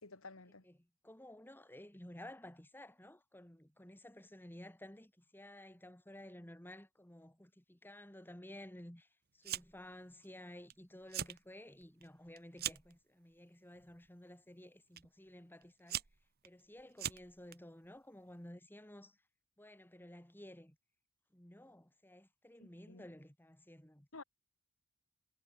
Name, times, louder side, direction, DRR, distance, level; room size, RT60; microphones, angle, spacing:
voice 1, 0.0-0.6 22.6-23.0 24.1-24.2, left 3 dB, 70° left, 2.6 m, -52 dB
voice 2, 0.6-9.1 9.3-16.0 16.4-19.2 19.6-20.8 21.3-24.1, left 1 dB, 10° left, 2.6 m, -54 dB
Fire, 9.4-9.9 10.2-10.7 11.0-11.4 11.8-13.0 13.7-14.1 15.0-15.1 15.6-17.6, right 11 dB, 50° right, 1.2 m, -42 dB
head